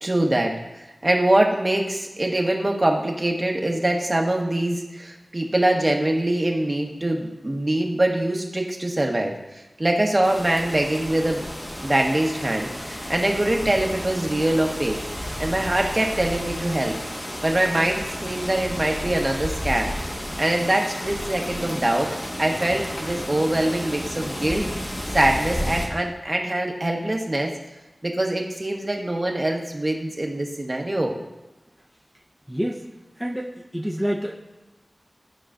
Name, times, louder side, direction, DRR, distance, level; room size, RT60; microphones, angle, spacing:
voice 1, 0.0-0.6 1.0-11.5 11.8-15.0 15.4-17.0 17.4-19.9 20.4-24.7 25.1-27.5 28.0-31.2, right 1 dB, 40° right, 1 dB, 1.2 m, -23 dB
sound 1, 10.2-25.9, equal, 40° left, 1.4 m, -32 dB
voice 2, 32.5-32.8 33.2-34.3, equal, ahead, -4 dB, 0.9 m, -27 dB
13.5 x 4.8 x 2.5 m, 1.0 s
wide cardioid pair, 45°, 0 cm